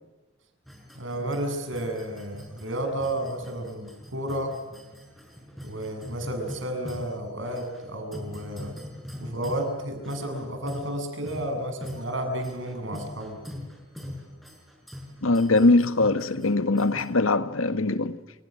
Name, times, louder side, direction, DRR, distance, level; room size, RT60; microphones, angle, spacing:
sound 1, 0.7-17.1, left 1 dB, ahead, 5.9 m, -43 dB
voice 1, 1.0-4.6 5.6-8.7 9.2-13.4, right 1 dB, 70° right, 7.5 m, -32 dB
voice 2, 15.2-18.2, left 2 dB, 85° left, 1.6 m, -22 dB
30.0 x 27.5 x 6.5 m
head